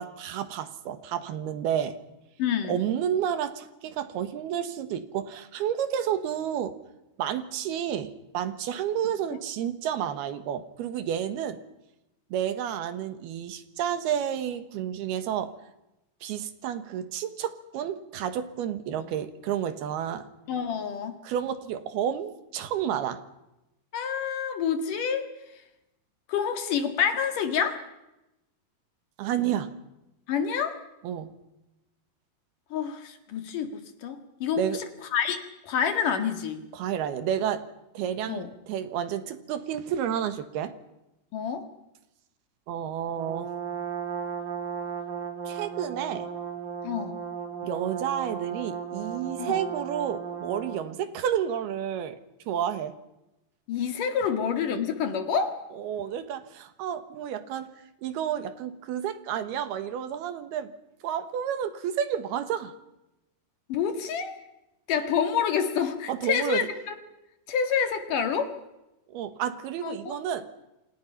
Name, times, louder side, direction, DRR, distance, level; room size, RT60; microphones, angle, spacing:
voice 1, 0.0-2.0 2.7-6.8 7.2-11.6 12.3-15.5 16.2-20.3 21.2-23.2 29.2-29.7 31.0-31.3 34.6-34.8 36.7-37.6 38.0-40.7 42.7-43.5 45.5-46.3 47.6-52.2 52.5-53.0 55.7-57.7 58.0-60.7 61.0-62.7 66.1-66.7 69.1-70.5, right 9 dB, 80° right, 11 dB, 3.3 m, -30 dB
voice 2, 2.4-2.8 20.5-21.2 23.9-25.3 26.3-27.8 30.3-30.8 32.7-36.6 38.3-38.5 41.3-41.7 46.8-47.2 49.4-49.6 53.7-55.6 63.7-64.4 64.9-67.0 67.5-68.5 69.8-70.2, left 7 dB, 60° left, 8 dB, 3.1 m, -28 dB
Brass instrument, 43.2-50.9, right 7 dB, 55° right, 4.4 m, -35 dB
28.0 x 26.5 x 5.7 m, 0.92 s
omnidirectional pair, 4.6 m